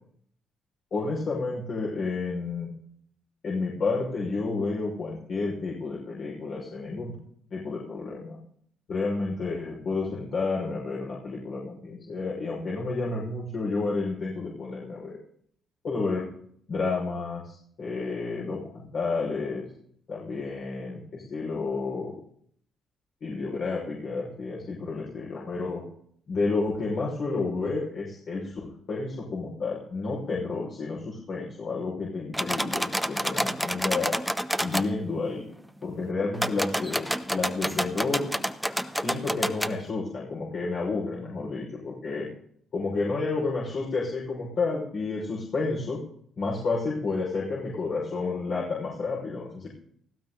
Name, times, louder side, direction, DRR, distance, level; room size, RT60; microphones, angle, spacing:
voice 1, 0.9-2.7 3.4-7.1 7.5-8.4 8.9-15.2 15.8-16.3 16.7-19.6 20.1-22.1 23.2-25.8 26.3-34.2 34.6-35.5 35.8-38.3 39.0-42.3 42.7-46.0 46.4-49.7, left 3 dB, 55° left, -4 dB, 5.6 m, -30 dB
sound 1, 32.3-34.9 36.3-39.7, equal, ahead, 0.9 m, -29 dB
18.0 x 15.5 x 4.0 m, 0.63 s
cardioid pair, 90°, 0 cm